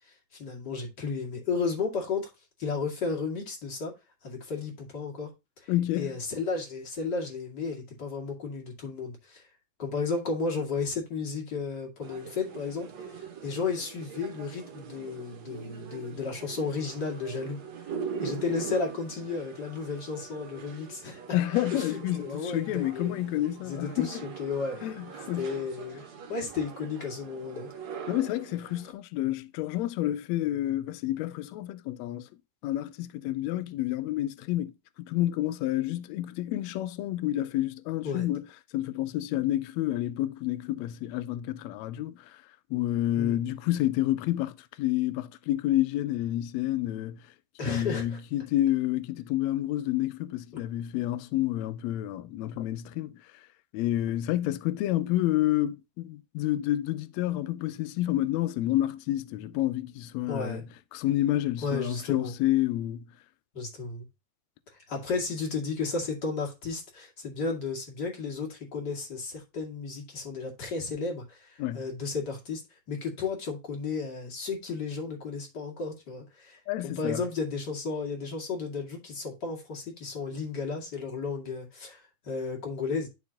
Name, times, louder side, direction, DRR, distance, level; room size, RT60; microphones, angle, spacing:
voice 1, 0.3-2.3 2.6-3.9 4.2-5.3 5.6-9.5 9.8-17.6 18.2-21.2 21.7-23.2 23.6-24.8 25.4-26.0 26.3-27.7 38.0-38.3 43.2-43.4 47.6-48.2 50.5-50.6 60.3-60.6 61.6-62.3 63.5-64.0 64.7-72.6 72.9-83.1, left 4 dB, 35° left, 2.4 m, -33 dB
voice 2, 5.7-6.2 21.3-24.2 24.8-25.5 28.1-32.3 32.6-38.4 38.7-42.4 42.7-47.2 47.7-53.2 53.7-60.6 60.9-63.0 71.6-71.8 76.7-77.2, left 14 dB, 80° left, 1.7 m, -29 dB
sound 1, 12.0-28.9, right 6 dB, 60° right, 2.6 m, -42 dB
12.0 x 4.0 x 2.8 m
omnidirectional pair, 3.5 m